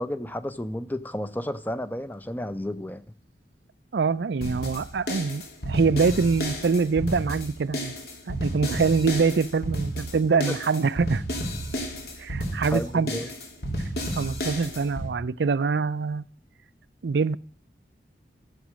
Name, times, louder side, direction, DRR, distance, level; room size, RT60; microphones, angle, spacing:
voice 1, 0.0-3.0 10.5-10.6 12.7-13.3, left 1 dB, 10° left, 0.6 m, -32 dB
voice 2, 3.9-7.9 8.3-11.2 12.2-13.1 14.2-16.2 17.0-17.4, right 5 dB, 80° right, 0.5 m, -24 dB
sound 1, 4.4-15.1, equal, 65° left, 2.9 m, -32 dB
14.5 x 7.4 x 6.3 m
head